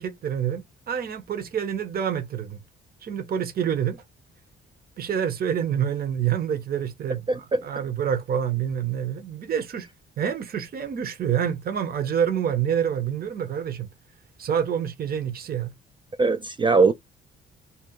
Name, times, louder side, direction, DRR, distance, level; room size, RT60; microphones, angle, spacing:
voice 1, 0.0-2.6 3.0-4.0 5.0-9.9 10.2-13.9 14.4-15.7, right 8 dB, 50° right, 0.8 m, -27 dB
voice 2, 7.3-7.6 16.2-16.9, right 4 dB, 25° right, 0.4 m, -20 dB
2.9 x 2.2 x 3.5 m
cardioid pair, 90°, 20 cm